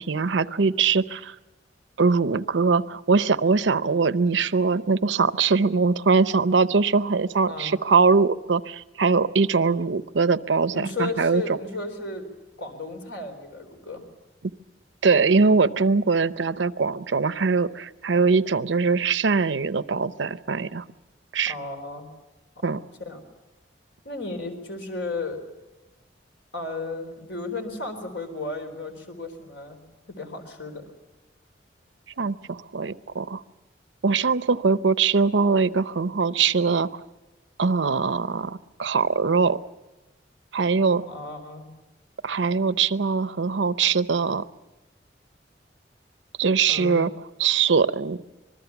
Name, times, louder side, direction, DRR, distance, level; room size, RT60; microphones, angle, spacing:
voice 1, 0.0-1.3 2.0-11.6 15.0-20.8 21.3-21.5 22.6-22.8 32.2-33.4 34.0-36.9 37.6-39.6 40.5-41.0 42.2-44.4 46.4-47.1 47.4-48.2, right 4 dB, 90° right, 14 dB, 0.7 m, -22 dB
voice 2, 10.7-12.3 12.6-14.1 21.5-22.1 22.6-22.8 23.1-23.2 24.0-25.4 26.5-29.8 30.1-30.9 41.1-41.7 46.7-47.1, left 3 dB, 85° left, 5 dB, 4.2 m, -34 dB
26.0 x 21.0 x 7.1 m, 1.1 s
head